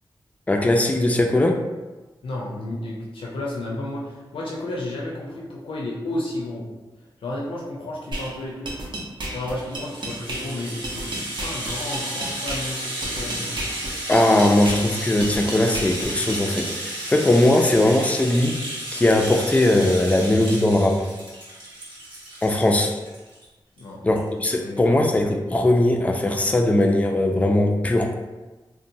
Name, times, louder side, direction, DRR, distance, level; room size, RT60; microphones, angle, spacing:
voice 1, 0.5-1.6 14.1-18.6 18.9-21.1 22.4-23.0 24.0-28.2, left 1 dB, 15° left, 3 dB, 0.3 m, -19 dB
voice 2, 2.2-6.7 7.2-8.7 9.3-13.6 23.8-24.1 24.5-25.1, left 1 dB, 85° left, -4 dB, 0.5 m, -32 dB
sound 1, 8.1-16.7, right 1 dB, 60° right, 0.6 m, -33 dB
Rattle (instrument), 9.4-23.4 23.8-23.9 24.1-24.3, right 1 dB, 80° right, 1.0 m, -33 dB
2.9 x 2.1 x 2.6 m, 1.2 s
wide cardioid pair, 70°, 9 cm